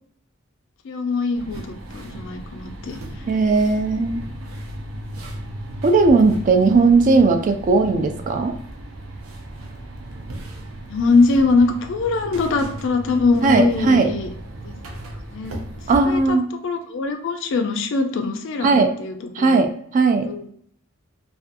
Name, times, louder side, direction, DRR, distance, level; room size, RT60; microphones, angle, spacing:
voice 1, 0.8-3.0 6.8-6.9 10.9-14.3 14.6-14.7 15.3-15.6 16.1-16.4 16.6-19.6 20.3-20.5, left 3 dB, 65° left, 6 dB, 0.4 m, -22 dB
sound 1, 1.3-16.3, right 1 dB, 85° right, 0.6 m, -35 dB
voice 2, 3.3-4.2 5.8-8.6 13.4-14.1 15.9-16.5 18.6-18.9 19.4-20.3, right 3 dB, 40° right, 7 dB, 0.3 m, -17 dB
2.5 x 2.2 x 2.5 m, 0.64 s
head